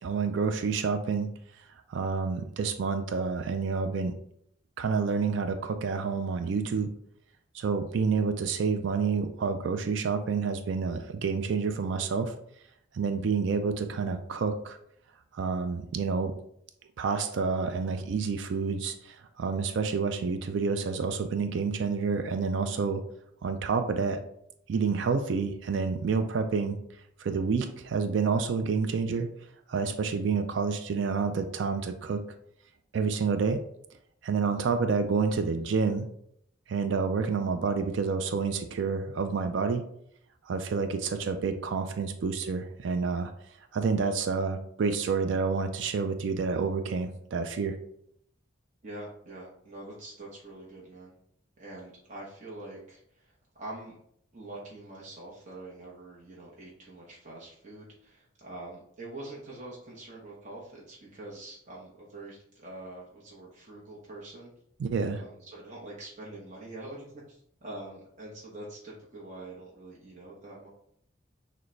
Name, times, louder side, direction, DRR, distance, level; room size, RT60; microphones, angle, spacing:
voice 1, 0.0-1.3 1.9-4.1 4.8-6.9 7.5-12.3 12.9-14.8 15.3-16.3 17.0-23.0 23.4-24.2 24.7-26.8 27.2-29.3 29.7-32.2 32.9-33.6 34.2-36.1 36.7-39.8 40.4-43.3 43.7-47.8 64.8-65.2, right 5 dB, 65° right, 8 dB, 0.3 m, -29 dB
voice 2, 48.8-51.1 51.6-54.0 54.3-64.5 65.2-70.7, right 2 dB, 35° right, -5 dB, 0.8 m, -45 dB
6.2 x 2.2 x 3.2 m, 0.70 s
head